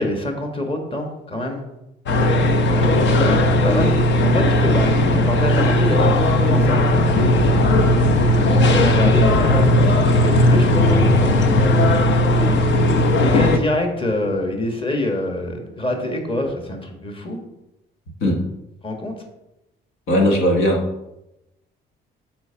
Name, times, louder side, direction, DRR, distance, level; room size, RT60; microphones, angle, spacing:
voice 1, 0.0-1.6 2.6-7.6 8.2-11.6 12.4-12.6 13.2-17.4 18.8-19.1, left 1 dB, 25° left, 4 dB, 1.5 m, -26 dB
sound 1, 2.1-13.6, left 1 dB, 70° left, 0.8 m, -16 dB
voice 2, 20.1-20.8, equal, 90° left, 1 dB, 1.4 m, -17 dB
6.7 x 4.4 x 5.7 m, 0.90 s
cardioid pair, 90°, 20 cm